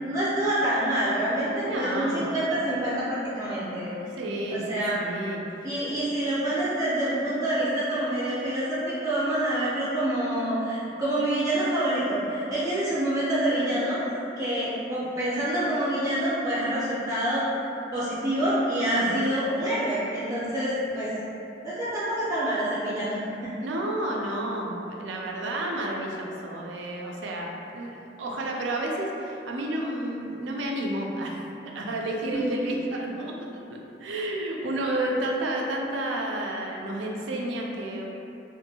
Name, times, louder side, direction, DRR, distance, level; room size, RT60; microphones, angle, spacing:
voice 1, 0.0-3.9 4.5-5.0 5.6-14.0 14.4-17.4 17.9-21.1 21.6-23.2 32.3-32.5, right 1 dB, 20° right, -10 dB, 0.5 m, -27 dB
voice 2, 1.6-2.3 4.2-5.4 18.9-19.3 23.6-31.4 31.7-38.1, right 1 dB, 80° right, -1 dB, 0.4 m, -31 dB
2.6 x 2.5 x 2.7 m, 2.8 s
head